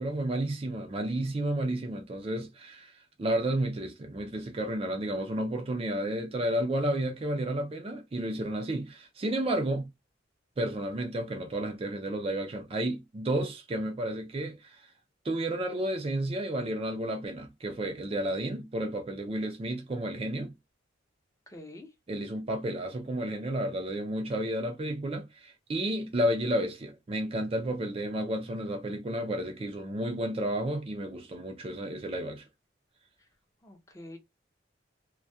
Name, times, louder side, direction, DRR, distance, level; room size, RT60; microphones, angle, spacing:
voice 1, 0.0-2.9 3.2-9.9 10.6-14.8 15.2-20.5 22.1-32.4, right 1 dB, 30° right, 0.4 m, -31 dB
voice 2, 21.5-21.9 33.2-33.3 33.6-34.2, left 1 dB, 15° left, 0.6 m, -47 dB
2.2 x 2.1 x 2.6 m
head